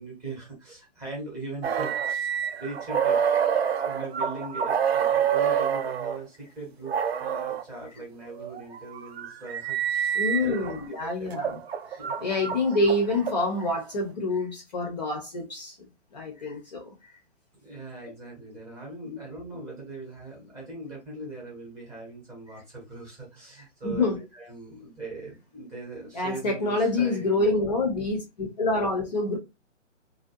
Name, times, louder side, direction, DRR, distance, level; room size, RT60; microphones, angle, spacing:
voice 1, 0.0-3.3 3.8-10.7 11.0-11.6 12.0-12.3 17.6-27.7, right 3 dB, 10° right, 0.8 m, -40 dB
sound 1, 1.6-6.2 6.9-7.6 8.4-10.8 11.3-13.7, right 8 dB, 55° right, 0.4 m, -27 dB
voice 2, 10.1-11.6 12.2-16.9 18.0-18.1 19.0-19.2 23.8-24.2 26.1-29.4, left 2 dB, 35° left, 0.6 m, -27 dB
2.5 x 2.2 x 2.5 m
hypercardioid pair, 145°, 37 cm